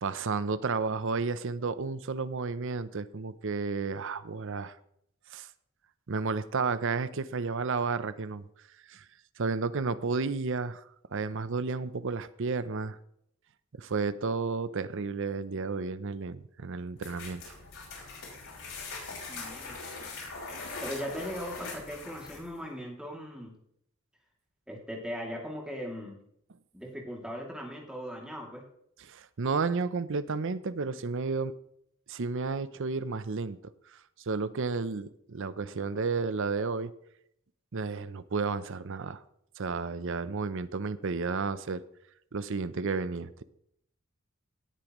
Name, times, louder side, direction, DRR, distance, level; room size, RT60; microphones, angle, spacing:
voice 1, 0.0-4.8 5.3-5.5 6.1-8.4 8.9-9.0 9.4-10.8 11.1-13.0 13.8-17.5 29.0-31.5 32.1-33.6 34.3-36.9 37.7-39.2 39.6-41.8 42.3-43.4, right 4 dB, 60° right, 14 dB, 0.6 m, -32 dB
sound 1, 17.0-22.6, left 3 dB, 65° left, 5.8 m, -41 dB
voice 2, 19.3-19.8 20.8-23.6 24.7-26.2 26.7-28.6, equal, 5° right, -1 dB, 2.6 m, -39 dB
18.0 x 8.7 x 3.1 m, 0.71 s
head